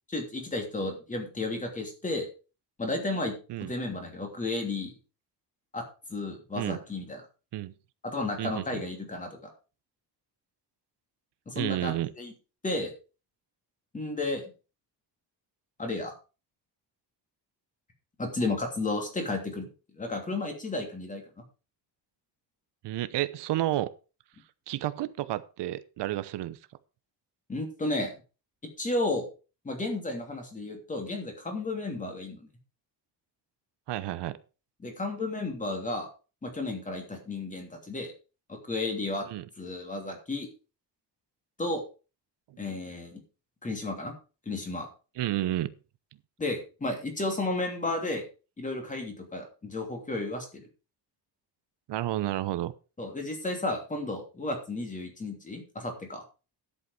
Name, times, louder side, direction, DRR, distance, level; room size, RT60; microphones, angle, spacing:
voice 1, 0.1-2.3 2.8-4.9 5.7-5.8 6.1-7.2 8.0-9.5 11.5-12.3 12.6-12.9 13.9-14.5 15.8-16.1 18.2-19.7 20.0-21.2 27.5-28.1 28.8-29.2 29.6-32.4 34.8-36.1 36.4-38.1 38.5-39.3 39.6-40.5 41.6-41.8 42.6-43.2 43.6-44.1 44.5-44.9 46.4-48.2 48.6-50.7 53.0-56.2, left 2 dB, 20° left, 2.9 m, -33 dB
voice 2, 8.4-8.8 11.5-12.1 22.8-23.9 24.7-26.6 33.9-34.4 39.3-39.4 45.2-45.7 51.9-52.7, right 14 dB, 80° right, 0.9 m, -31 dB
11.0 x 8.2 x 4.9 m
cardioid pair, 180°, 41 cm